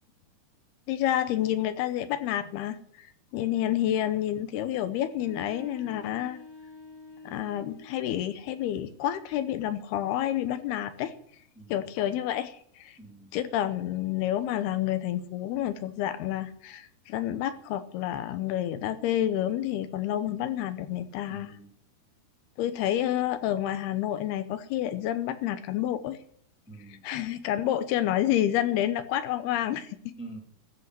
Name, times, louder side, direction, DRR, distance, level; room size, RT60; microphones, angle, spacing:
voice 1, 0.9-6.4 7.3-11.1 11.7-13.0 13.3-21.5 22.6-26.2 27.0-30.1, left 12 dB, 80° left, 12 dB, 2.8 m, -29 dB
sound 1, 5.1-8.1, left 3 dB, 60° left, 3.1 m, -47 dB
voice 2, 11.6-11.9 13.0-13.3 21.3-21.7 26.7-27.1 30.2-30.4, right 2 dB, ahead, 1 dB, 1.8 m, -45 dB
14.0 x 7.3 x 9.6 m, 0.63 s
omnidirectional pair, 4.6 m